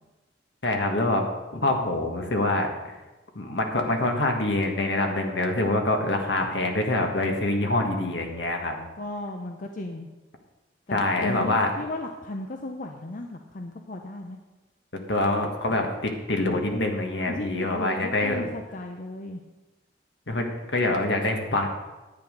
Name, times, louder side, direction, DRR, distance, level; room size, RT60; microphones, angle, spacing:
voice 1, 0.6-1.2 1.5-2.7 3.3-8.7 10.9-11.7 14.9-18.4 20.3-21.7, left 2 dB, 70° left, 3 dB, 1.5 m, -25 dB
voice 2, 8.7-10.1 10.9-14.4 17.3-19.4, left 2 dB, 45° left, 3 dB, 0.7 m, -35 dB
10.5 x 8.5 x 5.2 m, 1.1 s
head